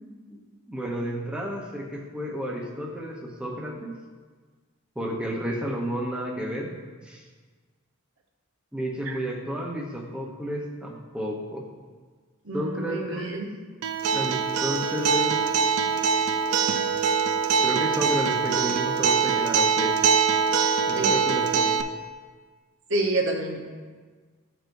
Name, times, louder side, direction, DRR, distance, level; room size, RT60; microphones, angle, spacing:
voice 1, 0.7-3.9 5.0-6.7 7.0-7.2 8.7-11.6 12.5-13.4 14.1-15.4 17.6-19.9 20.9-21.7, equal, 5° right, -2 dB, 0.7 m, -31 dB
voice 2, 12.4-13.5 20.9-21.2 22.9-23.6, right 2 dB, 60° right, -1 dB, 0.9 m, -28 dB
Acoustic guitar, 13.8-21.8, right 6 dB, 85° right, 0.4 m, -23 dB
11.5 x 4.6 x 2.6 m, 1.5 s
head